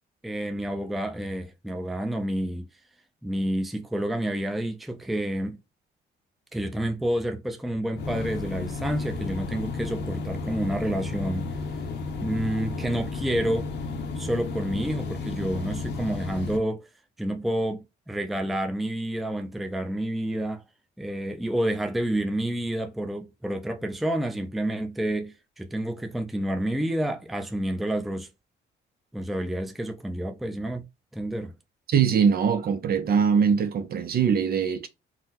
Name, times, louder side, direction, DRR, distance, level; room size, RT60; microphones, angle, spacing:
voice 1, 0.2-2.7 3.2-5.6 6.5-11.5 12.2-13.7 14.2-16.9 17.2-20.6 21.0-28.3 29.1-30.8 31.1-31.5, right 1 dB, ahead, 0.4 m, -29 dB
sound 1, 8.0-16.6, left 3 dB, 60° left, 0.7 m, -33 dB
voice 2, 31.9-34.9, right 7 dB, 50° right, 0.5 m, -22 dB
3.7 x 2.1 x 2.8 m
cardioid pair, 90°, 20 cm